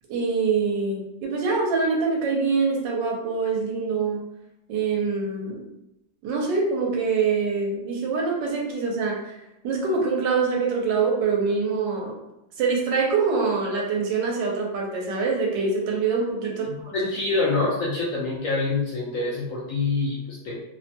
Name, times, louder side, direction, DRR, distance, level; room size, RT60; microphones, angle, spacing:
voice 1, 0.1-4.2 4.7-5.6 6.2-9.3 9.6-12.2 12.6-17.0, right 4 dB, 85° right, -1 dB, 1.3 m, -24 dB
voice 2, 16.6-20.6, left 3 dB, 70° left, -4 dB, 0.7 m, -26 dB
3.1 x 2.1 x 2.6 m, 0.87 s
omnidirectional pair, 1.9 m